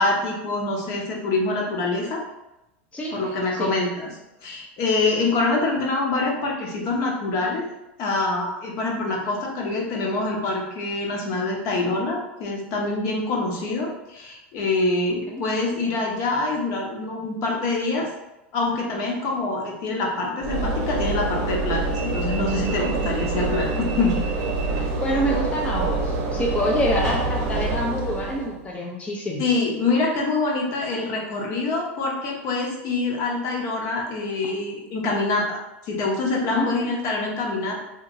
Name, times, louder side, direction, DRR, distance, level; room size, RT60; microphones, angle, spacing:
voice 1, 0.0-2.2 3.1-4.1 4.4-7.6 8.0-18.1 18.5-24.2 29.4-35.6 35.9-37.8, left 3 dB, 50° left, -1 dB, 0.8 m, -25 dB
Train / Engine / Alarm, 20.4-28.7, right 3 dB, 50° right, 0.7 m, -26 dB
voice 2, 25.0-29.6 36.5-36.9, equal, 20° left, -2 dB, 0.5 m, -27 dB
2.9 x 2.7 x 2.6 m, 0.93 s
hypercardioid pair, 110°, 7 cm